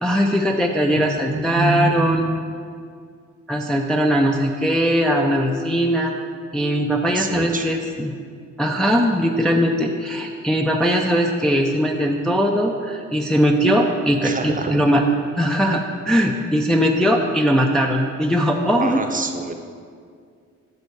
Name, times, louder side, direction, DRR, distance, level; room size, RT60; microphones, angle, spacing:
voice 1, 0.0-2.3 3.5-6.1 6.5-8.1 8.6-15.0 15.4-19.0, equal, ahead, 1 dB, 0.5 m, -20 dB
voice 2, 1.0-2.3 7.1-7.7 14.2-14.8 18.8-19.5, right 3 dB, 25° right, 5 dB, 0.8 m, -26 dB
8.1 x 4.2 x 6.9 m, 2.2 s
cardioid pair, 90°, 30 cm